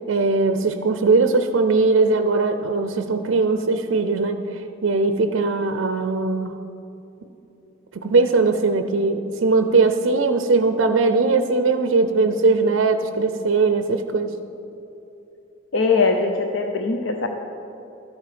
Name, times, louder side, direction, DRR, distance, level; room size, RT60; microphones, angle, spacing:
voice 1, 0.1-6.5 7.9-14.4, right 3 dB, 70° right, 8 dB, 0.5 m, -20 dB
voice 2, 15.7-17.3, left 4 dB, 70° left, 4 dB, 0.6 m, -21 dB
13.0 x 8.3 x 5.1 m, 3.0 s
head